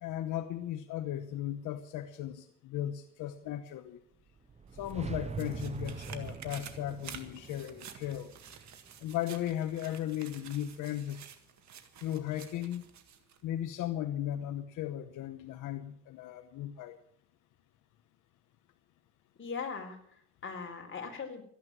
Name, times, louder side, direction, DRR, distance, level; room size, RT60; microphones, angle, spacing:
voice 1, 0.0-4.0 4.7-8.3 9.0-11.2 12.0-12.9 13.4-17.0, left 12 dB, 85° left, 8 dB, 1.0 m, -36 dB
sound 1, 4.2-9.4, right 5 dB, 20° right, 0.6 m, -43 dB
sound 2, 4.7-13.4 13.8-13.9, right 8 dB, 65° right, 1.8 m, -51 dB
voice 2, 19.4-21.4, left 5 dB, 40° left, 2 dB, 4.0 m, -40 dB
14.0 x 10.5 x 7.4 m, 0.63 s
cardioid pair, 90°, 30 cm